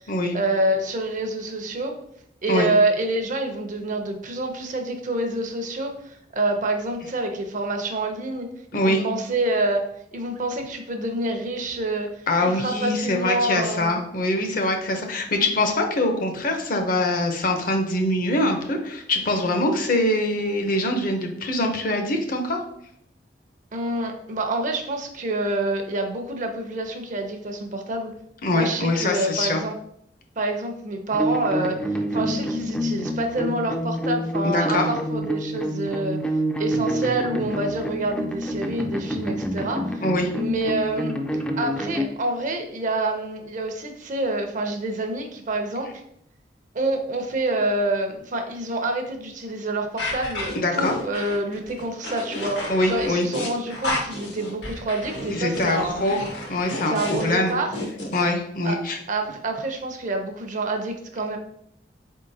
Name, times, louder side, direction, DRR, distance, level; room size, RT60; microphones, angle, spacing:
voice 1, 0.3-1.9 2.4-8.5 8.7-14.0 23.7-28.1 28.5-29.8 30.4-36.2 36.6-40.0 40.4-41.1 41.6-46.0 46.7-56.0 56.8-57.8 58.6-58.8 59.1-61.4, right 2 dB, 45° right, 4 dB, 0.6 m, -27 dB
voice 2, 8.7-9.0 12.3-22.6 28.4-29.6 34.4-34.9 40.0-40.3 50.6-50.9 52.7-53.3 55.3-56.2 56.5-57.0 57.2-57.5 58.1-59.0, left 1 dB, 50° left, 4 dB, 0.7 m, -23 dB
sound 1, 31.1-42.1, equal, 5° left, 0.4 m, -27 dB
sound 2, 50.0-58.2, left 1 dB, 90° left, 1.3 m, -31 dB
4.5 x 3.7 x 2.7 m, 0.71 s
head